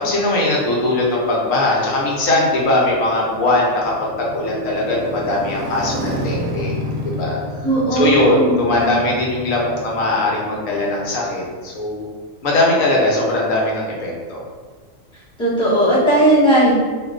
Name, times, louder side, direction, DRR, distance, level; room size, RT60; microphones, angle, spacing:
voice 1, 0.0-6.7 7.0-7.4 7.9-12.1 12.4-14.4, left 2 dB, 85° left, -3 dB, 1.3 m, -20 dB
Motorcycle, 2.2-11.7, equal, 40° right, 0.7 m, -30 dB
voice 2, 7.6-8.9 15.4-16.7, right 1 dB, 5° left, -10 dB, 1.3 m, -16 dB
4.3 x 2.6 x 3.1 m, 1.5 s
omnidirectional pair, 1.3 m